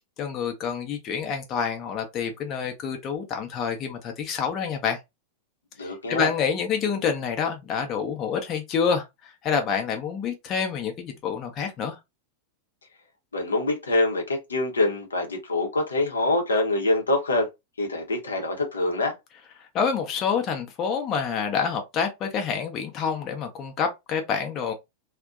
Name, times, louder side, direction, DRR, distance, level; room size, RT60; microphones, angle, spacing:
voice 1, 0.2-5.0 5.8-12.0 19.6-24.7, left 6 dB, 35° left, 0.5 m, -27 dB
voice 2, 5.8-6.3 13.3-17.5 17.8-19.1, left 2 dB, 75° left, 0.6 m, -25 dB
2.5 x 2.1 x 2.3 m
figure-of-eight pair, 90°, 0 cm